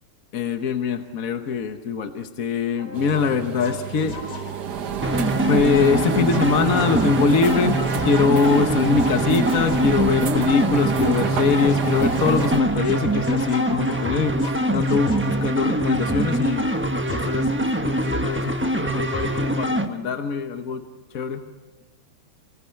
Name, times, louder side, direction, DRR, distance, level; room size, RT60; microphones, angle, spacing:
voice 1, 0.3-4.2 5.4-16.6 17.1-20.8 21.1-21.4, left 5 dB, 50° left, 7 dB, 1.2 m, -23 dB
sound 1, 2.8-4.8 5.6-10.1 11.0-15.6 16.4-16.7 17.1-17.4, left 2 dB, 85° left, 6.2 m, -39 dB
sound 2, 2.9-12.6, right 7 dB, 55° right, 1.6 m, -28 dB
Distorted Synth Sequence, 5.0-19.9, right 1 dB, 10° right, 0.6 m, -24 dB
28.5 x 19.0 x 8.6 m, 1.2 s
omnidirectional pair, 2.4 m